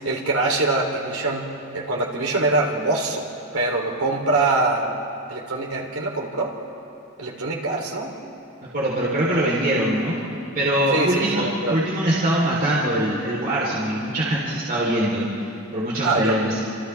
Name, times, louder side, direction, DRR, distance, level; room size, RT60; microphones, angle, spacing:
voice 1, 0.0-3.3 3.5-5.0 5.3-6.6 7.2-8.2 10.9-11.8 16.0-16.4, right 2 dB, 75° right, 0 dB, 3.4 m, -24 dB
voice 2, 8.7-10.2 10.5-16.6, right 1 dB, 45° right, -6 dB, 3.7 m, -23 dB
29.5 x 27.5 x 3.5 m, 2.6 s
head